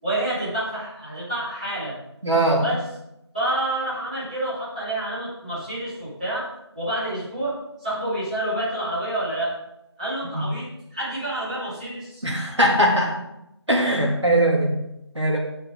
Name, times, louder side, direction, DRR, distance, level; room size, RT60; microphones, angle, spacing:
voice 1, 0.0-2.0 2.6-2.8 3.3-6.5 6.7-9.5 10.0-12.3, right 1 dB, 15° right, -12 dB, 5.0 m, -28 dB
voice 2, 2.2-2.6 10.2-10.4 12.2-13.2 13.7-14.7 15.1-15.4, right 1 dB, 85° right, -1 dB, 3.2 m, -20 dB
16.5 x 6.5 x 4.1 m, 0.85 s
figure-of-eight pair, 175°, 14 cm